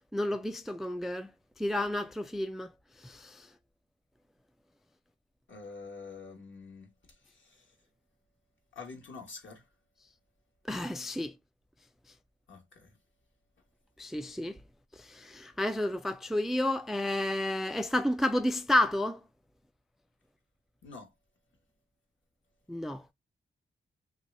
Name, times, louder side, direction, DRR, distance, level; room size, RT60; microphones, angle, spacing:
voice 1, 0.1-1.3 1.6-2.7 3.0-3.5 10.7-11.3 14.0-14.6 15.1-19.2 22.7-23.0, left 1 dB, ahead, 0.3 m, -31 dB
voice 2, 5.5-7.7 8.7-9.7 12.5-13.0 20.8-21.1, left 4 dB, 65° left, 1.3 m, -47 dB
2.7 x 2.4 x 3.0 m
cardioid pair, 50°, 21 cm